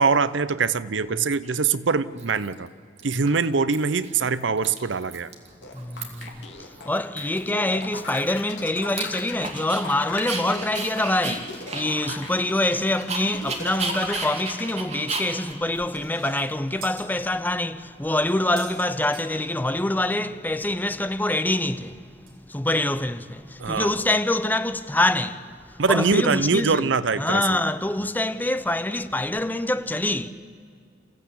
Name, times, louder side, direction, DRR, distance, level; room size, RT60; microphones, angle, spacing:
voice 1, 0.0-2.7 3.0-5.3 23.6-23.9 25.8-27.6, right 5 dB, 75° right, 0.7 m, -23 dB
Dog, 1.4-1.5 2.2-2.7 3.0-3.7 4.0-4.2 4.4-5.5 5.7-6.4 6.7-6.8 7.2-9.8 10.2-16.8, right 4 dB, 35° right, 2.6 m, -34 dB
sound 1, 5.6-14.7, left 3 dB, 65° left, 2.4 m, -37 dB
voice 2, 5.7-26.9 27.2-30.3, left 1 dB, 10° left, 0.6 m, -25 dB
sound 2, 16.2-17.3 17.8-17.9 18.3-19.9 20.2-20.3 20.5-20.6 21.5-21.6 22.3-22.4 22.9-23.0, right 5 dB, 55° right, 3.9 m, -44 dB
28.5 x 15.5 x 8.6 m
head